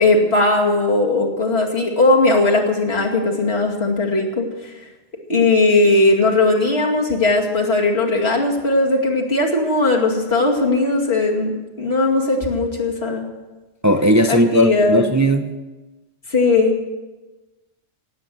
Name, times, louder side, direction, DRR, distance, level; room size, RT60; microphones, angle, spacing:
voice 1, 0.0-4.7 5.3-11.5 11.8-13.2 14.3-15.0 16.3-16.8, left 2 dB, 70° left, -2 dB, 2.7 m, -18 dB
voice 2, 13.8-15.5, equal, 20° right, 4 dB, 0.7 m, -16 dB
18.0 x 8.4 x 7.7 m, 1.2 s
omnidirectional pair, 1.1 m